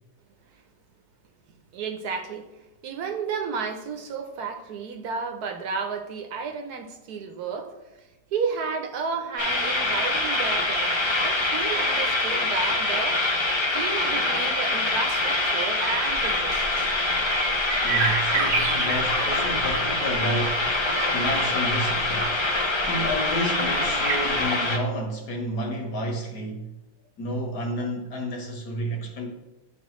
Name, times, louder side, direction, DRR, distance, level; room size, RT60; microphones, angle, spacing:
voice 1, 1.5-2.5 2.8-13.2 13.7-16.6, right 5 dB, 70° right, 1.3 m, -32 dB
sound 1, 9.4-24.8, left 2 dB, 35° left, 0.4 m, -25 dB
sound 2, 16.1-24.4, right 4 dB, 50° right, 1.0 m, -32 dB
voice 2, 17.8-20.8 21.1-22.4 22.8-26.7 27.2-29.3, equal, 80° left, 1.9 m, -30 dB
11.5 x 3.9 x 3.1 m
omnidirectional pair, 1.7 m